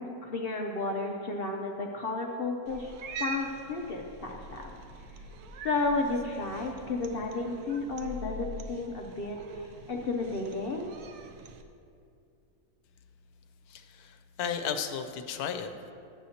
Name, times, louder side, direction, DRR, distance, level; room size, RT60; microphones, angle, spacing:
voice 1, 0.0-2.9 3.2-4.7 5.6-10.9, left 3 dB, 65° left, 1 dB, 0.6 m, -32 dB
Cat, 2.7-11.6, right 2 dB, 85° right, 1.1 m, -43 dB
voice 2, 13.7-15.9, left 7 dB, 80° left, 7 dB, 1.1 m, -35 dB
11.5 x 7.7 x 2.8 m, 2.5 s
omnidirectional pair, 1.6 m